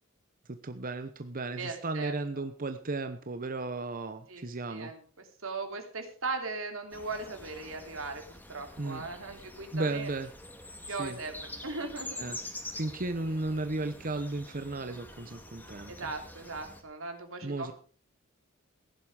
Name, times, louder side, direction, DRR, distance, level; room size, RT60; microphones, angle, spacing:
voice 1, 0.6-4.9 8.8-9.1 9.7-10.3 11.0-11.2 12.2-12.4 12.8-16.1 17.4-17.7, right 2 dB, 45° right, 9 dB, 0.9 m, -34 dB
voice 2, 1.5-2.4 4.3-4.4 4.7-10.1 10.9-12.3 15.9-17.7, right 3 dB, 85° right, 5 dB, 3.2 m, -39 dB
sound 1, 6.9-16.8, left 2 dB, 10° left, 2.0 m, -46 dB
16.0 x 11.0 x 4.9 m, 0.41 s
head